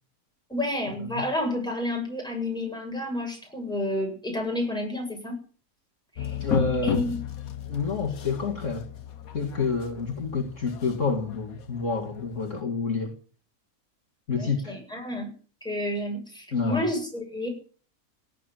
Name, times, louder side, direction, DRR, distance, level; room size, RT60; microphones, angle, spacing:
voice 1, 0.5-5.4 6.1-6.4 6.8-7.2 14.4-15.3 15.6-17.5, left 1 dB, 5° left, 1 dB, 7.6 m, -30 dB
sound 1, 6.2-12.6, left 9 dB, 70° left, 1.6 m, -34 dB
voice 2, 6.4-7.0 7.7-8.9 9.3-13.1 14.3-14.8 16.5-16.8, left 4 dB, 55° left, 2 dB, 2.6 m, -28 dB
17.5 x 9.0 x 9.1 m, 0.42 s
omnidirectional pair, 1.6 m